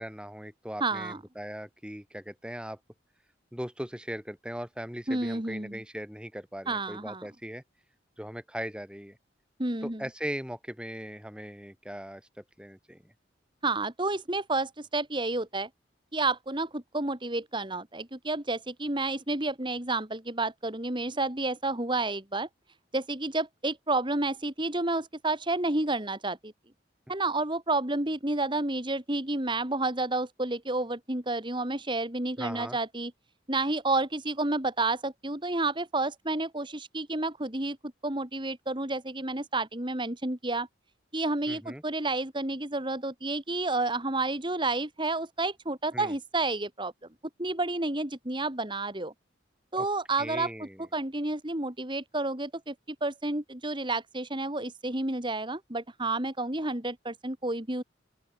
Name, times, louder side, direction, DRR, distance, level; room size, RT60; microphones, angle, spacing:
voice 1, 0.0-2.8 3.5-7.6 8.2-9.2 9.8-13.1 32.4-32.8 41.5-41.8 45.9-46.1 49.8-49.9 50.2-50.8, equal, 5° right, 6.7 m, -39 dB
voice 2, 0.8-1.2 5.1-5.8 6.7-7.2 9.6-10.0 13.6-15.7 16.1-22.5 22.9-26.5 27.1-33.1 33.5-37.8 38.0-40.7 41.1-46.9 47.4-49.1 49.7-57.8, right 2 dB, 25° right, 2.6 m, -30 dB
open air
head